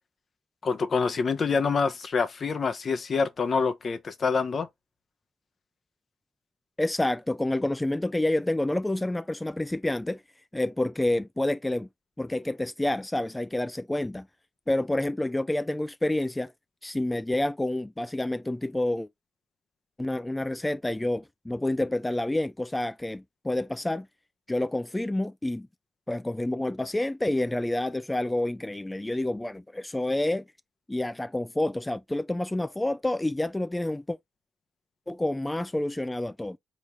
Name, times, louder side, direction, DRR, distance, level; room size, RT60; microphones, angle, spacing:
voice 1, 0.6-4.7, left 5 dB, 50° left, 0.8 m, -26 dB
voice 2, 6.8-10.2 10.5-11.9 12.2-14.3 14.7-16.5 16.8-19.1 20.0-24.1 24.5-25.7 26.1-30.4 30.9-34.2 35.1-36.6, left 1 dB, 15° left, 0.3 m, -28 dB
4.1 x 3.1 x 3.4 m
supercardioid pair, 50°, 0 cm